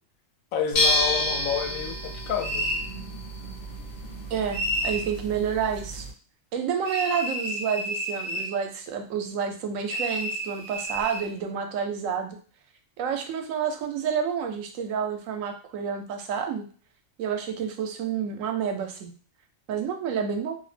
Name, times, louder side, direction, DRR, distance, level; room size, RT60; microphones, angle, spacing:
voice 1, 0.5-2.7, left 7 dB, 85° left, 4 dB, 1.0 m, -29 dB
sound 1, 0.7-6.1, left 1 dB, 50° left, 0.6 m, -30 dB
sound 2, 2.4-2.9 4.5-5.1 6.8-8.5 9.9-11.3, equal, 45° right, 0.5 m, -30 dB
voice 2, 4.3-6.1 6.5-12.4 13.0-16.7 17.2-19.1 19.7-20.6, right 7 dB, 80° right, 4 dB, 1.0 m, -29 dB
2.6 x 2.0 x 3.2 m, 0.41 s
omnidirectional pair, 1.4 m